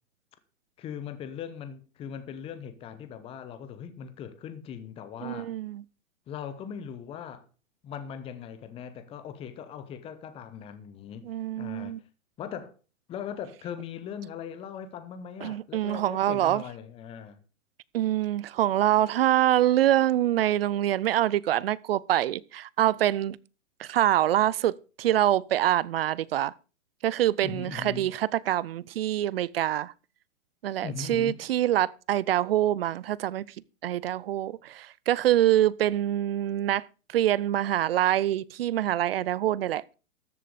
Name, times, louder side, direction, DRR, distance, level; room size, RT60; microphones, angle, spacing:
voice 1, 0.8-5.5 6.3-7.4 7.8-11.3 11.6-12.0 12.4-12.7 13.1-17.4 27.4-28.1 30.8-31.4, left 8 dB, 15° left, 0.9 m, -39 dB
voice 2, 5.2-5.8 11.3-12.0 15.4-16.6 17.9-23.4 23.8-26.5 27.0-29.9 30.6-33.4 33.8-36.8 37.1-39.8, right 12 dB, 45° right, 0.5 m, -25 dB
13.5 x 7.6 x 5.0 m
hypercardioid pair, 145°, 41 cm